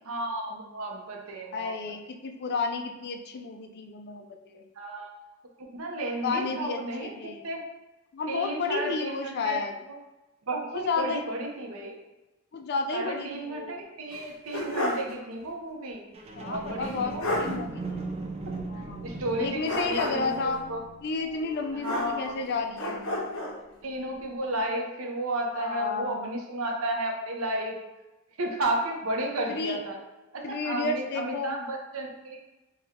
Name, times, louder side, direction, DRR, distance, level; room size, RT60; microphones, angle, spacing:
voice 1, 0.1-1.8 4.8-5.1 5.6-7.6 8.3-9.6 10.5-12.0 12.9-16.0 16.4-17.3 18.5-18.6 19.0-20.8 21.7-22.3 23.8-27.8 28.4-30.0 30.3-32.4, right 1 dB, 80° right, 1 dB, 0.7 m, -33 dB
voice 2, 1.5-4.6 6.2-7.5 8.1-9.7 10.7-11.2 12.5-13.8 16.4-18.0 18.7-19.0 19.4-20.6 21.0-23.1 25.5-26.4 29.5-29.8 30.4-31.6, left 4 dB, 50° left, 5 dB, 0.4 m, -32 dB
sound 1, 14.1-15.1 15.5-15.6 16.8-16.9 17.2-17.5 19.6-20.4 21.8-22.4 22.8-23.6, left 1 dB, 70° left, 0.8 m, -31 dB
sound 2, 16.1-23.6 24.1-24.2, right 3 dB, 30° right, 0.4 m, -40 dB
4.2 x 2.2 x 3.6 m, 1.0 s
head